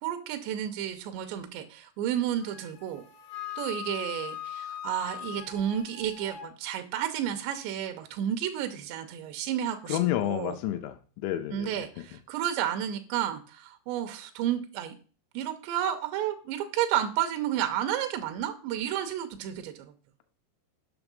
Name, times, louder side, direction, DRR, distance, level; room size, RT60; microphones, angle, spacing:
voice 1, 0.0-3.0 3.6-10.0 10.2-10.6 11.5-15.0 15.3-19.9, right 10 dB, 90° right, 7 dB, 2.9 m, -31 dB
Wind instrument woodwind instrument, 2.4-6.5, left 10 dB, 70° left, 2.3 m, -40 dB
voice 2, 9.9-11.8, left 13 dB, 85° left, 7 dB, 3.0 m, -30 dB
7.1 x 6.0 x 5.2 m, 0.39 s
omnidirectional pair, 5.1 m